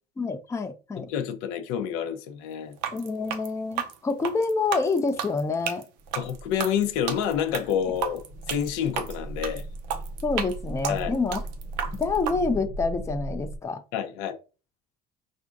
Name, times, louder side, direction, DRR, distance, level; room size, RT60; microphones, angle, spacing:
voice 1, 0.2-1.1 2.9-5.8 10.2-11.4 12.0-13.8, left 4 dB, 15° left, 0.4 m, -27 dB
voice 2, 1.0-2.7 6.1-9.6 10.9-11.1 13.9-14.4, left 8 dB, 75° left, 0.6 m, -28 dB
sound 1, 2.7-12.4, right 8 dB, 80° right, 0.6 m, -33 dB
sound 2, 6.0-13.6, right 2 dB, 30° right, 0.7 m, -38 dB
4.2 x 2.5 x 2.5 m
hypercardioid pair, 75°, 21 cm